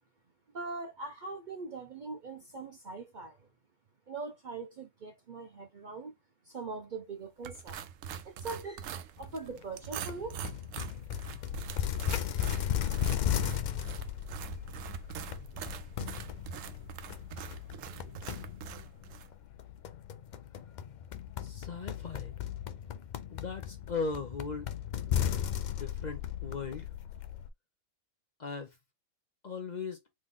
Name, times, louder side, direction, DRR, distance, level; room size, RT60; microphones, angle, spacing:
voice 1, 0.5-3.5 4.1-6.1 6.4-7.8 8.2-10.4, right 4 dB, 50° right, 0.6 m, -41 dB
sound 1, 7.4-19.3, right 8 dB, 80° right, 1.0 m, -44 dB
sound 2, 10.1-27.5, left 10 dB, 70° left, 0.4 m, -36 dB
voice 2, 21.4-22.3 23.3-24.7 25.7-26.9 28.4-28.7 29.4-30.0, left 4 dB, 40° left, 0.7 m, -38 dB
3.8 x 3.2 x 3.6 m
omnidirectional pair, 1.3 m